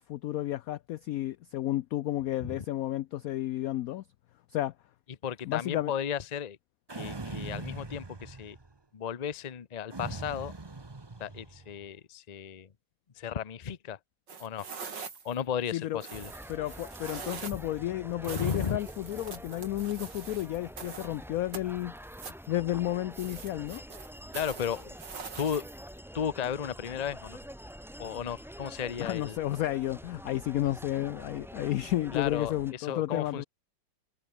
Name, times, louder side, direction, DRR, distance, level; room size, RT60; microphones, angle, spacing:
voice 1, 0.0-4.0 4.5-4.7 5.4-5.9 15.7-16.0 16.5-21.9 22.5-23.8 29.0-33.4, left 14 dB, 75° left, 0.8 m, -32 dB
voice 2, 5.2-6.6 6.9-8.6 8.9-10.5 11.2-12.7 13.2-14.0 14.4-14.7 15.2-16.3 18.3-18.8 24.3-24.9 25.4-25.7 26.1-27.4 28.0-29.4 32.1-33.4, left 8 dB, 40° left, 0.6 m, -34 dB
sound 1, 6.9-8.8 9.9-11.7, right 3 dB, 20° right, 0.9 m, -41 dB
sound 2, 14.3-15.4 16.0-17.7 18.2-21.2 21.5-22.5 23.1-26.0, right 5 dB, 70° right, 3.3 m, -43 dB
sound 3, 16.1-32.7, equal, ahead, 1.3 m, -46 dB
omnidirectional pair, 2.0 m